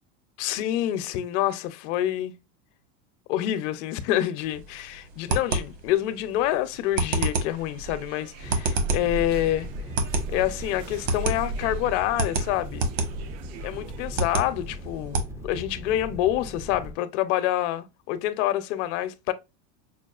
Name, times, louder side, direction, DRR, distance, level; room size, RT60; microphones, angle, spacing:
voice 1, 0.4-2.3 3.3-9.7 10.3-12.9 13.6-19.3, left 13 dB, 70° left, 0.7 m, -27 dB
sound 1, 4.4-15.3, right 2 dB, 60° right, 1.2 m, -30 dB
sound 2, 7.1-14.3, right 3 dB, 75° right, 0.7 m, -38 dB
sound 3, 8.4-16.9, equal, 10° right, 0.3 m, -39 dB
5.8 x 2.4 x 2.3 m
supercardioid pair, 150°, 38 cm